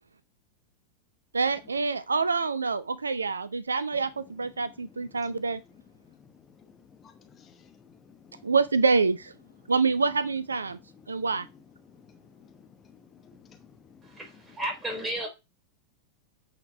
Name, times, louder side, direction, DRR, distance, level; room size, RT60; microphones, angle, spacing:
voice 1, 1.3-5.6 8.4-9.3 9.7-10.8 11.1-11.5, right 4 dB, 75° right, 0.5 m, -26 dB
voice 2, 4.8-5.3 6.0-7.1 7.7-8.5 10.9-11.2 11.9-14.2, left 6 dB, 25° left, 1.0 m, -55 dB
voice 3, 14.0-15.3, right 1 dB, 15° right, 3.7 m, -33 dB
8.5 x 4.4 x 4.6 m
figure-of-eight pair, 90°, 0 cm